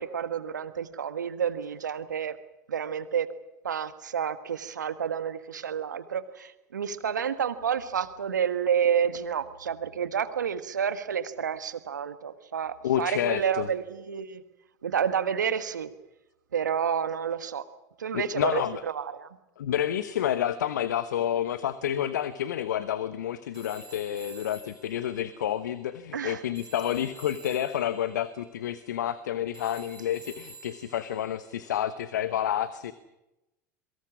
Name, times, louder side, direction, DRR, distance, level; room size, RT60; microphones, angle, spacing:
voice 1, 0.0-2.3 2.7-3.3 3.6-14.4 14.8-15.9 16.5-17.6 18.0-18.6 18.9-19.3 26.1-26.4, right 8 dB, 85° right, 11 dB, 1.6 m, -29 dB
voice 2, 12.8-13.7 18.1-18.8 19.6-32.9, left 10 dB, 75° left, 13 dB, 1.1 m, -29 dB
Telephone, 23.5-26.3 26.6-31.8, right 2 dB, 5° right, 7.6 m, -50 dB
27.5 x 23.0 x 6.2 m, 0.95 s
hypercardioid pair, 80°, 10 cm